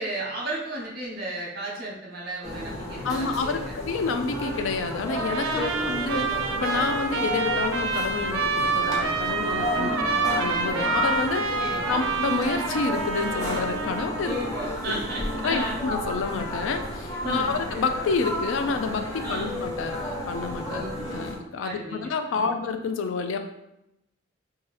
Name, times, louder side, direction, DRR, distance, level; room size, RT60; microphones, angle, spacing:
voice 1, 0.0-3.8 5.5-6.0 9.7-10.2 11.6-12.0 14.2-15.9 17.2-17.6 19.2-19.6 20.6-21.3 21.6-22.6, right 1 dB, 50° right, -3 dB, 0.8 m, -34 dB
sound 1, 2.4-21.4, equal, 15° left, 0.6 m, -32 dB
voice 2, 3.0-9.9 10.3-14.4 14.9-15.0 15.4-20.8 21.1-23.4, left 4 dB, 75° left, 7 dB, 0.3 m, -29 dB
Trumpet, 5.1-14.3, right 4 dB, 85° right, 0.4 m, -28 dB
2.8 x 2.3 x 3.1 m, 0.85 s
head